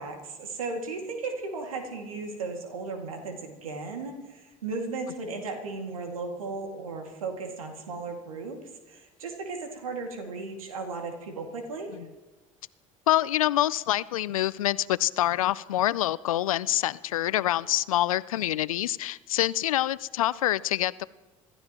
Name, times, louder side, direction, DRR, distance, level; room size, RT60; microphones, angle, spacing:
voice 1, 0.0-12.0, right 3 dB, 85° right, 3 dB, 2.2 m, -36 dB
voice 2, 13.1-21.0, left 14 dB, 85° left, 20 dB, 0.5 m, -26 dB
26.0 x 14.0 x 3.0 m, 1.2 s
hypercardioid pair, 65°, 17 cm